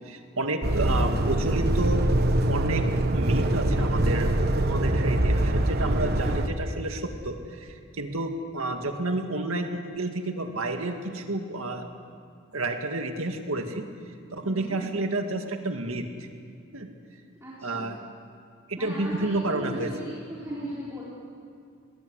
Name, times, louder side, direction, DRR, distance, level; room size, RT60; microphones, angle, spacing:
voice 1, 0.1-2.0 2.5-11.9 12.5-13.9 14.3-16.1 16.7-16.9 17.6-18.0 18.7-19.9, right 2 dB, 75° right, 5 dB, 2.1 m, -30 dB
sound 1, 0.6-6.5, right 1 dB, 50° right, 1.2 m, -24 dB
voice 2, 14.4-14.8 17.4-17.9 18.8-21.1, equal, 15° right, -8 dB, 3.8 m, -38 dB
21.5 x 20.5 x 8.1 m, 2.2 s
head